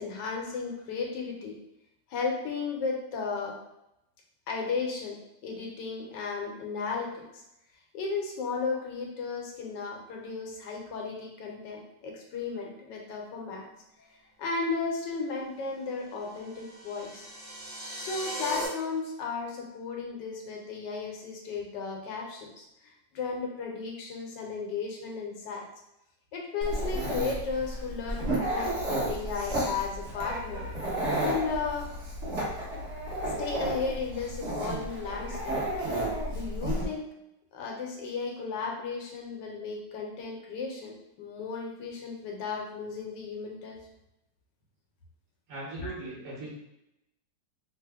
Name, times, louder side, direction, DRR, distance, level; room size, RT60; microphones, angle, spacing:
voice 1, 0.0-1.6 2.1-3.6 4.5-7.4 7.9-13.7 14.0-14.1 14.4-17.3 18.0-25.7 26.3-30.7 31.2-31.9 33.2-35.6 36.3-37.1 37.5-43.8 45.8-45.9, left 4 dB, 80° left, 0 dB, 1.3 m, -34 dB
sound 1, 16.1-18.7, right 1 dB, 25° right, 1.2 m, -39 dB
Dog, 26.6-36.8, right 1 dB, 45° right, 1.0 m, -32 dB
voice 2, 45.5-46.5, right 2 dB, 65° right, -6 dB, 1.4 m, -39 dB
3.3 x 2.0 x 3.4 m, 0.86 s
omnidirectional pair, 1.9 m